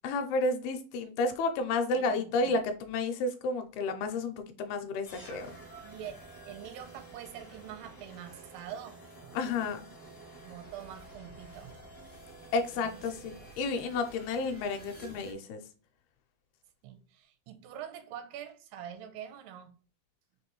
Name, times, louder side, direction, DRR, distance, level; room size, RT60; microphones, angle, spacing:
voice 1, 0.0-5.5 9.3-9.8 12.5-15.6, left 3 dB, 80° left, 2.4 m, -31 dB
voice 2, 1.9-2.6 5.8-9.4 10.4-11.8 12.8-13.0 16.8-19.8, right 9 dB, 85° right, 2.6 m, -45 dB
sound 1, 5.0-15.3, right 2 dB, 65° left, 0.4 m, -50 dB
6.6 x 2.6 x 3.0 m
omnidirectional pair, 4.7 m